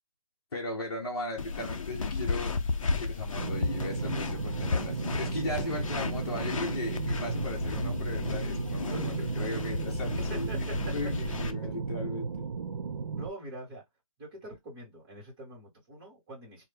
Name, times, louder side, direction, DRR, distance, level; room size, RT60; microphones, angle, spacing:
voice 1, 0.5-2.6 3.0-10.5 10.9-12.5, left 2 dB, 40° left, 0.9 m, -37 dB
sound 1, 1.4-11.5, left 4 dB, 60° left, 0.6 m, -33 dB
sound 2, 3.4-13.3, right 5 dB, 55° right, 0.4 m, -35 dB
voice 2, 8.7-9.3 10.3-10.9 11.2-11.3 11.6-11.8 13.1-13.8 14.2-16.6, right 1 dB, 10° right, 1.1 m, -43 dB
3.1 x 2.2 x 3.2 m
hypercardioid pair, 170°, 19 cm